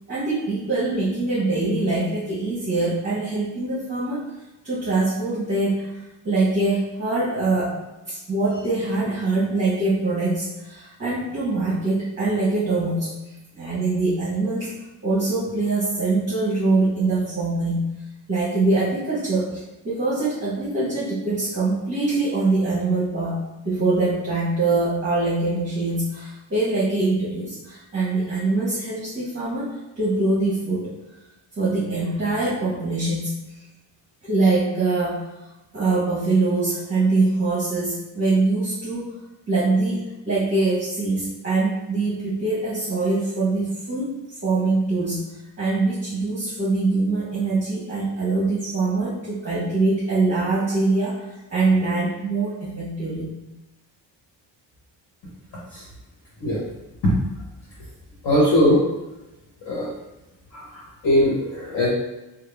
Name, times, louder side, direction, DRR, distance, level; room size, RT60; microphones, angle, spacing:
voice 1, 0.1-4.2 4.6-6.0 6.2-7.8 8.1-13.1 13.5-14.7 15.0-17.9 18.3-23.4 23.6-30.9 31.6-33.3 34.2-35.2 35.7-39.1 39.5-45.2 45.6-51.2 51.5-53.3, right 3 dB, 25° right, -10 dB, 1.1 m, -23 dB
voice 2, 58.2-58.8 59.6-59.9 60.5-61.9, equal, 50° left, -7 dB, 1.1 m, -20 dB
3.6 x 2.0 x 3.4 m, 0.99 s
cardioid pair, 135°, 46 cm